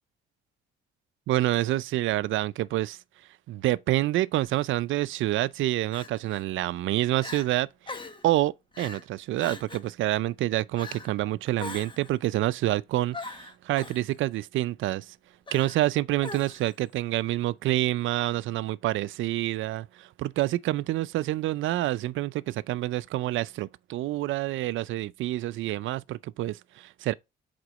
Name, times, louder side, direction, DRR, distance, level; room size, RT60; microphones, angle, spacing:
voice 1, 1.3-3.0 3.5-7.7 8.2-15.2 15.5-27.1, right 15 dB, 80° right, 0.5 m, -27 dB
Crying sobbing, 4.4-4.6 5.9-6.4 6.9-7.0 7.2-7.5 7.9-8.2 8.7-9.0 9.4-9.9 10.8-11.1 11.6-12.1 13.1-14.0 15.5-15.9 16.2-16.7, left 3 dB, 25° left, 1.4 m, -41 dB
7.8 x 3.8 x 5.2 m
cardioid pair, 90°, 20 cm